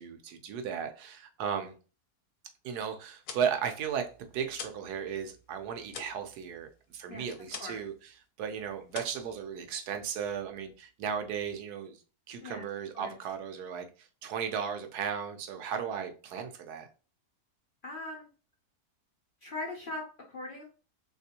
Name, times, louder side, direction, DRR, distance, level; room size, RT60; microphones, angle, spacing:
voice 1, 0.0-1.7 2.6-12.0 12.3-16.9, right 7 dB, 85° right, 1.2 m, -36 dB
sound 1, 3.0-4.9 5.2-7.9 8.2-8.5 8.9-10.0, left 7 dB, 80° left, 1.1 m, -45 dB
voice 2, 17.8-18.3 19.4-20.0 20.3-20.6, left 2 dB, 50° left, 0.6 m, -39 dB
3.3 x 3.0 x 2.7 m
omnidirectional pair, 1.6 m